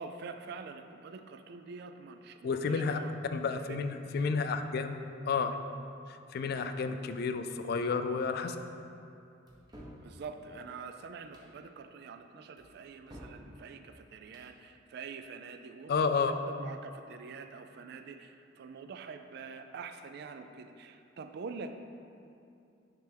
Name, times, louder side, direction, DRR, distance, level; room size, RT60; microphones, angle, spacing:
voice 1, 0.0-3.1 3.7-3.8 10.0-21.8, right 5 dB, 55° right, 7 dB, 0.3 m, -45 dB
voice 2, 2.4-3.0 3.3-5.0 5.3-5.6 6.3-8.6 15.9-16.3, left 5 dB, 55° left, 9 dB, 0.3 m, -31 dB
sound 1, 9.5-10.0 11.2-11.5 12.6-13.4 14.2-14.5, equal, 20° right, 0.8 m, -51 dB
9.2 x 3.4 x 3.4 m, 2.6 s
head